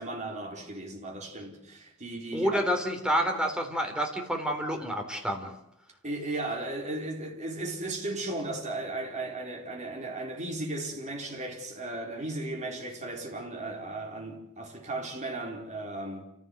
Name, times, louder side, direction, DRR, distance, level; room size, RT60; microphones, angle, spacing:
voice 1, 0.0-2.7 6.0-16.3, right 2 dB, 35° right, 4.5 m, -36 dB
voice 2, 2.3-5.5, equal, 5° right, 3.5 m, -28 dB
28.5 x 15.5 x 7.9 m
head